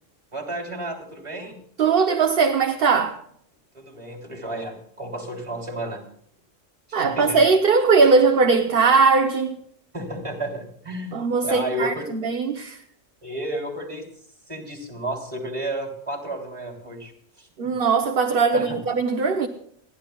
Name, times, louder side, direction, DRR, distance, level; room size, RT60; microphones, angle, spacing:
voice 1, 0.3-1.6 3.7-6.0 6.9-7.4 9.9-12.1 13.2-14.1 14.5-17.1 17.4-17.5 18.5-18.8, right 1 dB, 25° right, 3.5 m, -32 dB
voice 2, 1.8-3.2 6.9-9.5 11.1-12.8 17.6-19.5, right 4 dB, 50° right, 1.1 m, -19 dB
29.5 x 11.0 x 2.3 m
omnidirectional pair, 1.3 m